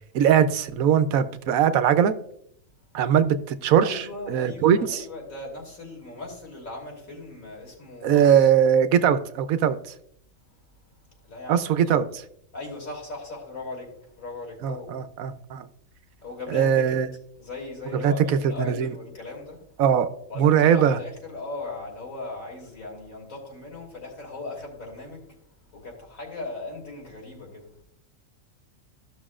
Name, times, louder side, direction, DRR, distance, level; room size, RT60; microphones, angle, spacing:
voice 1, 0.1-2.1 2.9-4.0 4.3-4.8 8.0-9.8 11.5-12.2 14.6-15.6 16.5-17.1 18.0-18.1 18.6-18.9 19.8-20.1 20.4-21.0, right 8 dB, 80° right, 1.1 m, -20 dB
voice 2, 3.8-8.5 11.3-12.1 12.5-14.9 16.2-17.0 17.4-19.6 20.3-25.4 25.7-27.7, left 2 dB, 70° left, 3.0 m, -38 dB
14.5 x 6.2 x 2.4 m
omnidirectional pair, 1.4 m